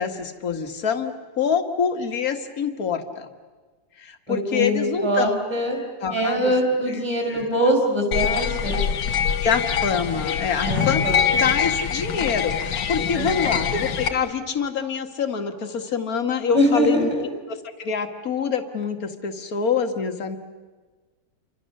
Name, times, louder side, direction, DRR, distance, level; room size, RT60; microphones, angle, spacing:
voice 1, 0.0-3.3 4.0-5.4 6.0-6.5 7.3-7.5 9.4-20.4, left 6 dB, 55° left, 7 dB, 2.0 m, -26 dB
voice 2, 4.3-5.8 6.1-8.8 10.6-11.5 13.1-13.9 16.5-17.2, equal, 15° right, 2 dB, 5.3 m, -23 dB
sound 1, 8.1-14.1, left 8 dB, 85° left, 1.8 m, -24 dB
30.0 x 25.0 x 6.6 m, 1.3 s
omnidirectional pair, 1.9 m